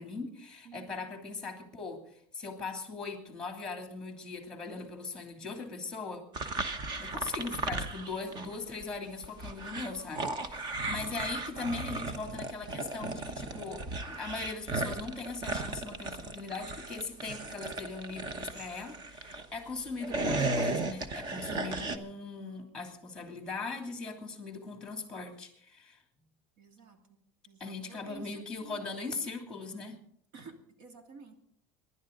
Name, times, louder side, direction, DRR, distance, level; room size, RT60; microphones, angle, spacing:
voice 1, 0.0-6.5 7.0-26.0 27.6-30.0, left 4 dB, 5° left, 4 dB, 2.8 m, -40 dB
voice 2, 0.6-1.1 10.8-11.4 26.6-27.2 27.5-28.8 30.3-31.3, right 4 dB, 65° right, 5 dB, 2.7 m, -52 dB
sound 1, 6.3-8.5 8.8-19.5 19.9-22.0, right 2 dB, 30° right, 1.1 m, -35 dB
25.5 x 11.5 x 3.9 m, 0.66 s
cardioid pair, 160°, 14 cm